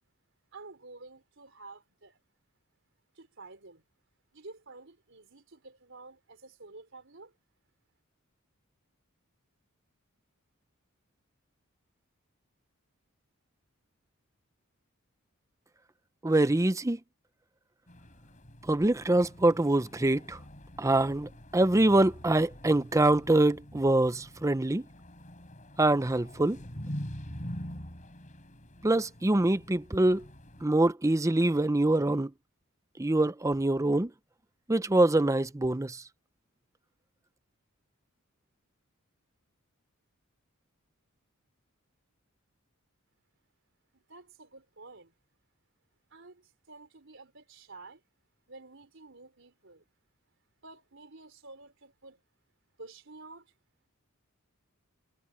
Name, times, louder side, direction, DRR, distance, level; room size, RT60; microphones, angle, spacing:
voice 1, 0.5-2.2 3.1-3.8 4.3-7.3 43.9-45.1 46.1-48.0 48.5-49.8 50.6-52.2 52.8-53.5, right 3 dB, 60° right, 4.4 m, -50 dB
voice 2, 16.2-17.0 18.7-20.4 20.8-24.8 25.8-26.6 28.8-30.2 30.6-32.3 33.0-34.1 34.7-36.0, right 2 dB, 15° right, 0.6 m, -24 dB
sound 1, 17.9-30.7, equal, 35° left, 5.5 m, -45 dB
head